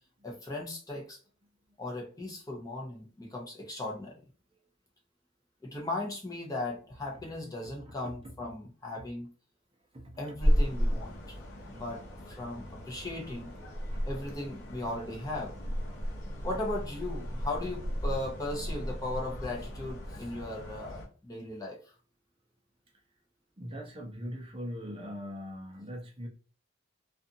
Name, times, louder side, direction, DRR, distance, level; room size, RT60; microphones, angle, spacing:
voice 1, 0.2-1.2 1.8-4.2 5.6-9.3 10.2-11.2 11.7-13.5 14.0-15.5 16.4-21.9, left 2 dB, 15° left, -2 dB, 0.7 m, -37 dB
voice 2, 7.6-7.9 8.2-8.3 9.9-10.4 10.9-11.0 13.9-14.0 23.6-26.3, equal, 25° right, 0 dB, 0.6 m, -41 dB
sound 1, 10.4-21.1, equal, 60° left, 0.9 m, -34 dB
2.5 x 2.4 x 2.6 m, 0.37 s
head